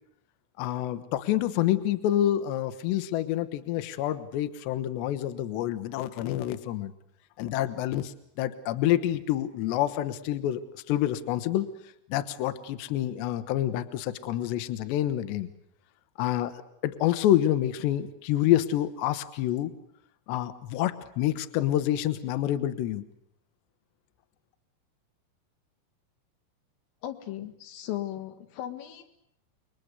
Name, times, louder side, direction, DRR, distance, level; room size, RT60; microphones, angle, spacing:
voice 1, 0.6-6.9 7.4-10.6 10.9-11.7 12.1-15.5 16.2-16.5 16.8-19.7 20.3-23.0, left 12 dB, 70° left, 11 dB, 3.1 m, -27 dB
voice 2, 27.0-29.0, left 13 dB, 85° left, 6 dB, 4.7 m, -36 dB
29.0 x 22.5 x 8.2 m, 0.73 s
omnidirectional pair, 5.7 m